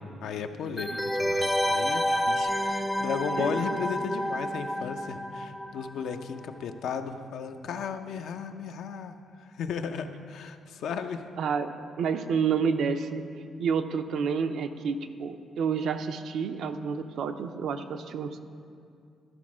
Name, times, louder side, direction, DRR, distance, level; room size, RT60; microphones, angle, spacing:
voice 1, 0.2-9.1 9.6-11.2, left 6 dB, 75° left, 7 dB, 0.5 m, -35 dB
sound 1, 0.8-6.2 6.5-6.6, equal, 10° left, 0.4 m, -29 dB
voice 2, 3.4-3.8 11.4-13.2 13.6-18.4, right 6 dB, 70° right, 8 dB, 0.5 m, -29 dB
12.5 x 4.2 x 6.1 m, 2.4 s
cardioid pair, 90°, 0 cm